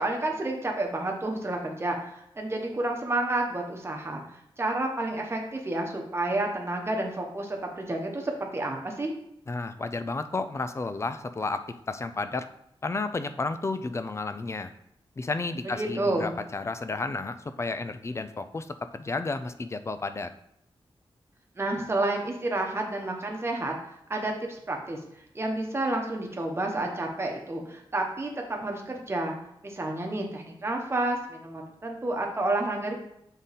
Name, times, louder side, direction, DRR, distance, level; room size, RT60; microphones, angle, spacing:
voice 1, 0.0-2.0 2.4-4.2 4.6-9.1 15.6-16.3 21.6-23.7 24.1-25.0 25.3-29.4 29.6-32.9, right 2 dB, 25° right, 1 dB, 1.0 m, -30 dB
voice 2, 9.5-12.5 12.8-14.7 15.2-18.7 18.9-20.3, left 3 dB, 30° left, 10 dB, 0.4 m, -32 dB
7.0 x 3.7 x 4.1 m, 0.76 s
wide cardioid pair, 145°, 10 cm